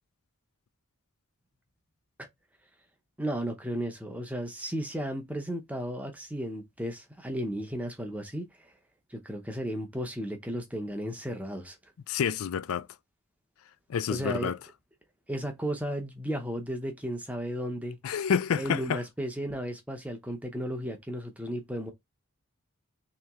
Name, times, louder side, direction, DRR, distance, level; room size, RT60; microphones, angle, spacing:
voice 1, 3.2-8.5 9.1-11.8 14.1-14.5 15.3-18.0 18.6-21.9, equal, 5° right, 0.7 m, -34 dB
voice 2, 12.1-12.9 13.9-14.6 18.0-19.0, left 7 dB, 75° left, 0.4 m, -28 dB
3.2 x 3.0 x 3.5 m
head